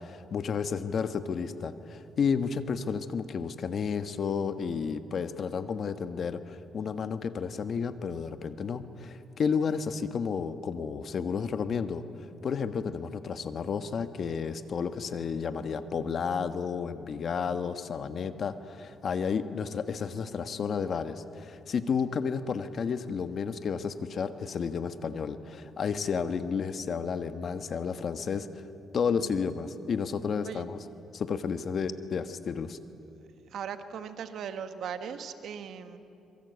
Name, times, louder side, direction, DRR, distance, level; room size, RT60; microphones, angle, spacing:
voice 1, 0.0-28.6 28.9-30.8 31.1-32.8, left 6 dB, 55° left, 10 dB, 1.4 m, -32 dB
voice 2, 29.0-29.4 30.4-30.6 33.5-36.0, right 7 dB, 70° right, 8 dB, 1.6 m, -39 dB
26.0 x 23.0 x 8.2 m, 2.8 s
cardioid pair, 90°, 0 cm